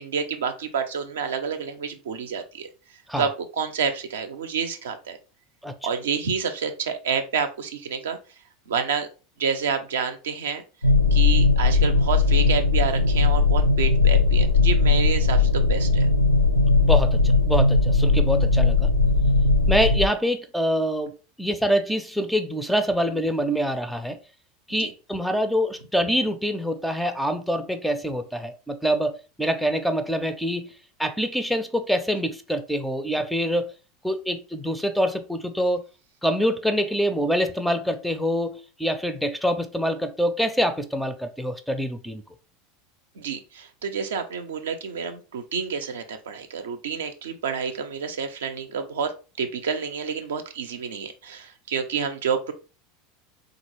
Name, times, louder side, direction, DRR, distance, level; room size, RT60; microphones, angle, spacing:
voice 1, 0.0-2.7 3.2-5.2 5.8-8.2 8.7-9.1 9.4-10.6 11.1-16.1 24.7-24.9 43.2-49.1 49.4-52.5, right 6 dB, 65° right, 0.5 m, -29 dB
sound 1, 10.8-20.1, left 3 dB, 85° left, 0.3 m, -19 dB
voice 2, 16.8-18.9 19.7-21.1 21.4-24.2 24.7-30.7 31.0-33.7 34.0-35.8 36.2-42.2, equal, ahead, 0.4 m, -25 dB
3.7 x 2.4 x 3.0 m
figure-of-eight pair, 80°, 0 cm